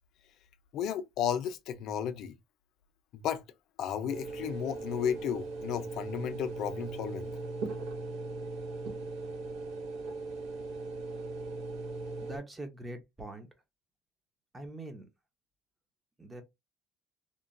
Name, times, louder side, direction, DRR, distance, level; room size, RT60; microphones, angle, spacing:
voice 1, 0.7-2.4 3.1-3.4 3.8-7.3, left 9 dB, 60° left, 0.4 m, -33 dB
sound 1, 4.1-12.4, right 3 dB, 90° right, 0.5 m, -39 dB
voice 2, 12.2-13.5 14.5-15.1 16.2-16.4, right 1 dB, 15° right, 0.6 m, -43 dB
2.9 x 2.2 x 2.5 m
cardioid pair, 150°, 0 cm